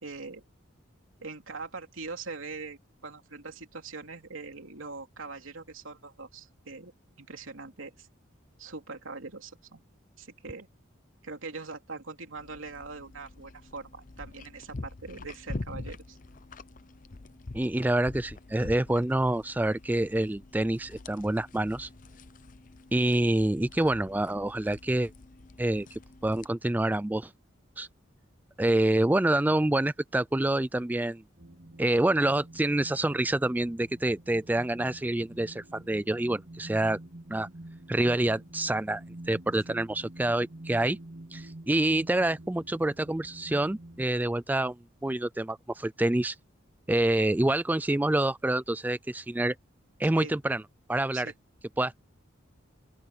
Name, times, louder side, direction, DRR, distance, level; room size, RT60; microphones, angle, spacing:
voice 1, 0.0-0.4 1.2-6.9 7.2-8.1 8.6-9.8 10.2-10.7 11.2-16.2 39.7-39.8 50.2-50.3 51.1-51.3, right 4 dB, 85° right, 3.1 m, -42 dB
sound 1, 12.4-26.5, left 2 dB, 40° left, 0.7 m, -45 dB
voice 2, 17.5-21.9 22.9-25.1 25.6-27.3 27.8-27.9 28.6-31.2 31.8-37.0 37.3-37.5 37.9-41.0 41.3-44.8 45.0-46.4 46.9-49.5 50.0-50.6 50.9-51.3 51.8-52.0, right 1 dB, 10° right, 0.3 m, -27 dB
sound 2, 31.4-44.1, right 1 dB, 50° right, 2.7 m, -48 dB
open air
head